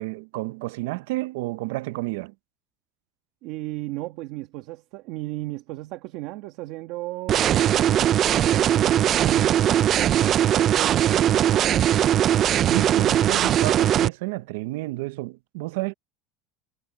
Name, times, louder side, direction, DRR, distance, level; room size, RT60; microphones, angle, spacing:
voice 1, 0.0-2.3 12.6-15.9, right 21 dB, 80° right, 0.6 m, -30 dB
voice 2, 3.4-12.0, right 18 dB, 55° right, 1.8 m, -35 dB
sound 1, 7.3-14.1, right 11 dB, 30° right, 0.3 m, -20 dB
cardioid pair, 165°, 0 cm